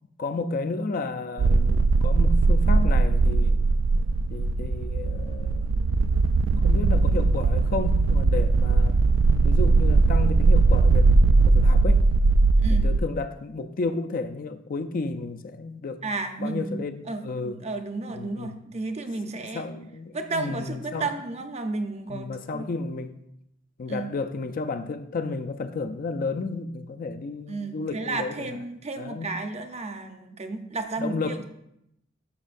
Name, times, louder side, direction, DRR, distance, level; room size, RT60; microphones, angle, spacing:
voice 1, 0.2-3.6 4.3-6.1 6.6-9.0 9.4-12.1 12.8-16.0 16.4-17.6 18.1-18.6 19.4-21.1 22.1-23.2 23.8-28.6 29.0-29.3 31.0-31.4, left 3 dB, 45° left, 0.4 m, -32 dB
sound 1, 1.4-13.0, right 3 dB, 75° right, 0.3 m, -20 dB
voice 2, 12.6-12.9 16.0-19.7 20.1-22.7 23.9-24.1 27.5-31.4, right 3 dB, 35° right, 0.7 m, -33 dB
12.0 x 5.5 x 2.5 m
head